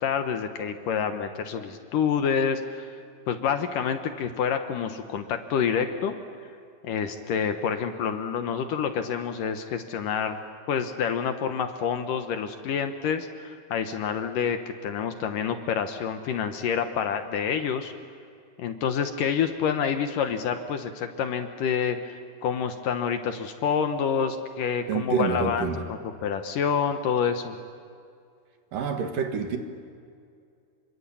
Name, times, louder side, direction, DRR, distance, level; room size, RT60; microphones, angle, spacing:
voice 1, 0.0-2.9 3.3-6.2 6.8-10.4 10.7-17.9 18.6-27.5, left 7 dB, 65° left, 7 dB, 2.5 m, -28 dB
voice 2, 24.9-25.9 28.7-29.6, right 6 dB, 65° right, 6 dB, 3.2 m, -28 dB
27.0 x 24.5 x 8.6 m, 2.3 s
omnidirectional pair, 4.6 m